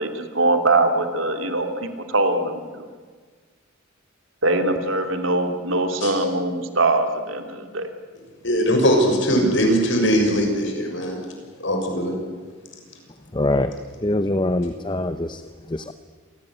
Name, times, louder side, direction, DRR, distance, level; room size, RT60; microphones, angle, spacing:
voice 1, 0.0-2.8 4.4-7.9, right 2 dB, 70° right, 6 dB, 2.9 m, -22 dB
voice 2, 8.4-11.2 11.6-12.1, equal, 65° left, 3 dB, 6.7 m, -20 dB
voice 3, 13.3-13.7 14.0-15.4 15.7-15.9, left 1 dB, 20° left, 10 dB, 0.7 m, -23 dB
27.5 x 19.0 x 10.0 m, 1.5 s
head